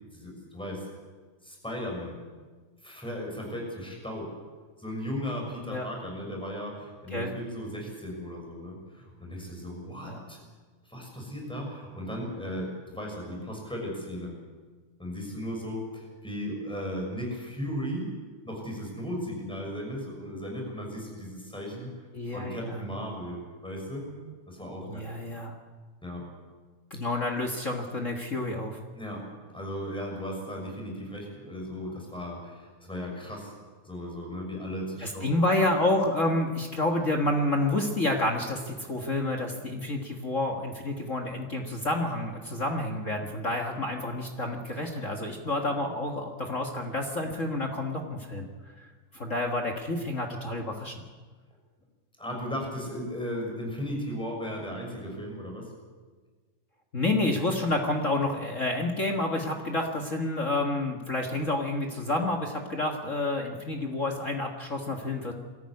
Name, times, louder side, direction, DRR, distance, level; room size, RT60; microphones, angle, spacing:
voice 1, 0.1-0.9 1.4-2.2 2.8-4.3 4.8-10.4 10.8-14.4 15.0-18.1 18.4-22.1 22.3-24.1 24.5-25.1 26.0-26.2 28.9-29.2 29.5-33.5 33.8-35.3 52.2-55.7, equal, ahead, -1 dB, 6.0 m, -36 dB
voice 2, 22.1-22.8 24.9-25.5 26.9-28.8 35.0-48.5 49.1-50.9 56.9-65.3, left 2 dB, 35° left, 3 dB, 1.2 m, -29 dB
22.5 x 14.0 x 9.7 m, 1.4 s
omnidirectional pair, 3.5 m